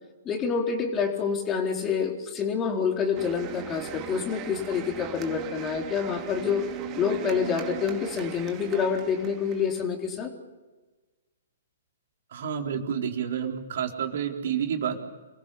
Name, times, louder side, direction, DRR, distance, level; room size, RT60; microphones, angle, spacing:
voice 1, 0.2-6.6 7.0-10.3, left 6 dB, 20° left, 3 dB, 4.0 m, -27 dB
sound 1, 3.1-9.9, right 10 dB, 25° right, 2.8 m, -39 dB
voice 2, 12.3-15.0, right 8 dB, 55° right, 2 dB, 4.0 m, -29 dB
28.0 x 21.5 x 7.1 m, 1.2 s
figure-of-eight pair, 120°, 0 cm